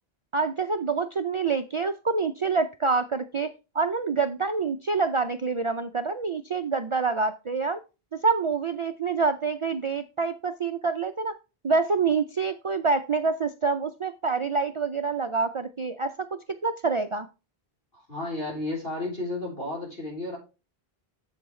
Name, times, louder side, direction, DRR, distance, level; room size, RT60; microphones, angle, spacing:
voice 1, 0.3-7.8 8.2-11.3 11.6-16.3 16.6-17.3, right 4 dB, 45° right, 8 dB, 0.4 m, -26 dB
voice 2, 17.9-20.4, left 2 dB, 70° left, -2 dB, 4.3 m, -32 dB
8.4 x 7.3 x 3.1 m, 0.30 s
omnidirectional pair, 1.0 m